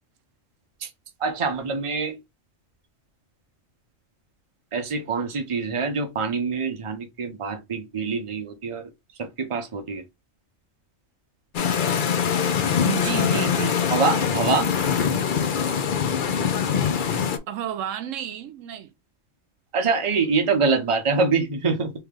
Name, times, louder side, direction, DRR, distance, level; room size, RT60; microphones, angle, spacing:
voice 1, 1.2-2.2 4.7-8.9 9.2-10.0 13.9-14.7 19.7-21.9, right 4 dB, 30° right, 0.7 m, -25 dB
sound 1, 11.5-17.4, left 7 dB, 55° left, 0.6 m, -23 dB
voice 2, 12.8-13.8 17.5-18.9, right 10 dB, 80° right, 0.9 m, -30 dB
3.2 x 3.1 x 3.6 m
omnidirectional pair, 1.3 m